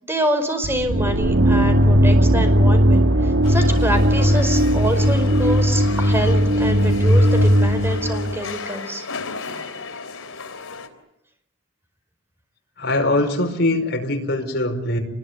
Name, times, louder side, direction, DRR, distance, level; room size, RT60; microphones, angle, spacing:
voice 1, 0.0-9.0, right 1 dB, 10° right, 6 dB, 4.8 m, -26 dB
sound 1, 0.6-8.5, equal, 60° right, 1.6 m, -17 dB
sound 2, 3.4-10.9, left 4 dB, 80° left, 3.7 m, -34 dB
voice 2, 12.8-15.0, left 2 dB, 50° left, 3 dB, 5.3 m, -22 dB
28.0 x 21.5 x 9.7 m, 0.82 s
head